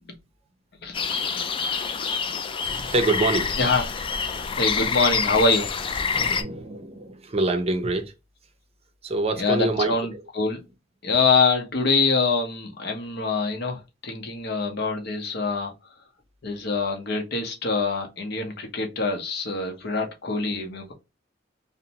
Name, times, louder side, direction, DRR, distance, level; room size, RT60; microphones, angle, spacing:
voice 1, 0.8-1.4 3.6-3.8 4.5-5.7 9.4-10.6 11.0-15.7 16.4-20.9, left 4 dB, 60° left, 0.7 m, -25 dB
sound 1, 0.9-6.4, left 5 dB, 30° left, 0.3 m, -27 dB
voice 2, 2.9-3.6 6.1-8.1 9.0-10.2, right 2 dB, 35° right, 0.5 m, -25 dB
2.6 x 2.1 x 2.8 m
head